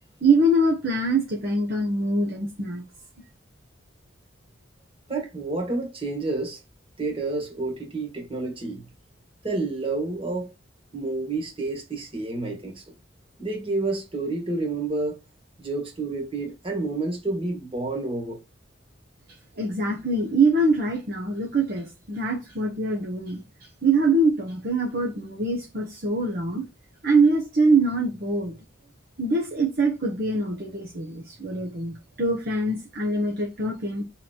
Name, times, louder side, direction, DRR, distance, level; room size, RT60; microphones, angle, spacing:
voice 1, 0.2-2.8 19.6-23.4 23.8-26.6 27.0-28.5 29.2-34.0, right 2 dB, 50° right, 1.2 m, -24 dB
voice 2, 5.1-6.6 7.0-8.8 9.4-10.5 10.9-12.8 13.4-15.2 15.6-18.4, right 3 dB, 30° right, 2.0 m, -29 dB
6.0 x 4.2 x 4.5 m
head